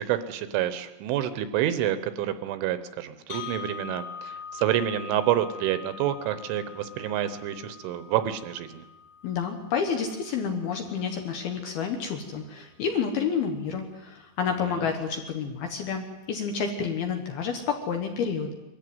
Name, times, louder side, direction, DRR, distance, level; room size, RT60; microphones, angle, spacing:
voice 1, 0.0-8.8 14.6-14.9, right 11 dB, 80° right, 11 dB, 3.1 m, -28 dB
sound 1, 3.3-11.3, left 6 dB, 50° left, 4.6 m, -43 dB
voice 2, 9.2-18.5, left 6 dB, 65° left, 4 dB, 2.6 m, -29 dB
23.0 x 14.0 x 9.4 m, 1.0 s
omnidirectional pair, 5.9 m